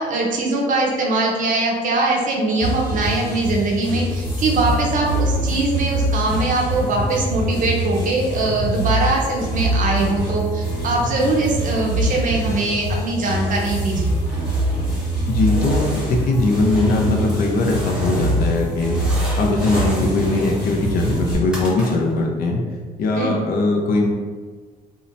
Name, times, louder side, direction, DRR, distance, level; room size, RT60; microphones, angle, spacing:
voice 1, 0.0-14.2 23.1-23.4, right 2 dB, 50° right, -1 dB, 0.6 m, -22 dB
sound 1, 2.6-21.3, right 1 dB, 30° left, 1.2 m, -24 dB
sound 2, 14.2-15.0 15.3-18.5 18.8-22.2, equal, 5° right, 0.6 m, -34 dB
voice 2, 15.3-19.0 19.4-22.6 23.0-24.1, left 2 dB, 60° left, 1 dB, 0.5 m, -20 dB
2.7 x 2.1 x 2.5 m, 1.5 s
cardioid pair, 110°, 17 cm